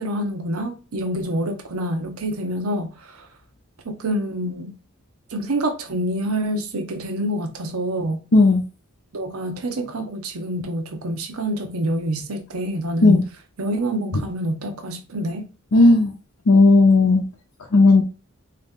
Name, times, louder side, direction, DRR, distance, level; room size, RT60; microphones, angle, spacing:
voice 1, 0.0-3.3 3.8-4.7 5.3-8.2 9.1-13.2 13.6-15.5, right 1 dB, 80° right, 0.7 m, -27 dB
voice 2, 8.3-8.6 13.0-13.2 15.7-16.1 16.5-17.2 17.7-18.0, left 3 dB, 80° left, 0.7 m, -13 dB
3.6 x 2.8 x 3.6 m
head